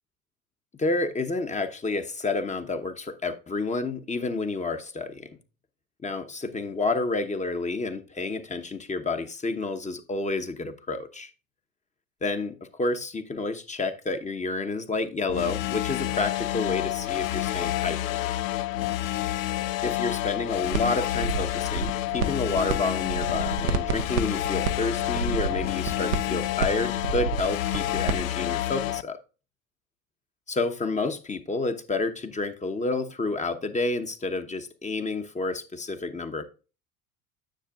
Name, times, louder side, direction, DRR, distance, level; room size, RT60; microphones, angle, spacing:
voice 1, 0.8-5.3 6.0-11.3 12.2-18.3 19.8-29.2 30.5-36.4, left 3 dB, 15° left, 1.0 m, -30 dB
sound 1, 15.3-29.0, left 15 dB, 70° left, 0.5 m, -29 dB
sound 2, 20.7-20.8 21.1-22.7 23.0-28.2, right 5 dB, 85° right, 0.7 m, -29 dB
10.0 x 6.6 x 2.4 m
hypercardioid pair, 70°, 42 cm